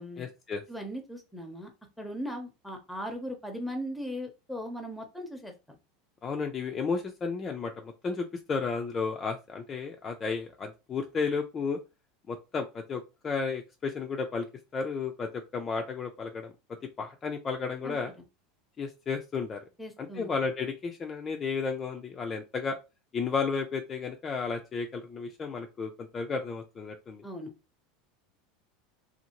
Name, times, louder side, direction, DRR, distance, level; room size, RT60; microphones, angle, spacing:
voice 1, 0.2-0.6 6.2-11.8 12.3-14.5 14.7-16.5 17.0-18.1 18.8-19.6 20.0-22.8 23.1-27.2, left 5 dB, 25° left, 4 dB, 0.4 m, -33 dB
voice 2, 0.7-1.7 2.0-5.5 17.8-18.0 19.8-20.3 27.2-27.5, equal, ahead, 4 dB, 0.7 m, -38 dB
2.6 x 2.4 x 2.9 m, 0.27 s
supercardioid pair, 125°, 0 cm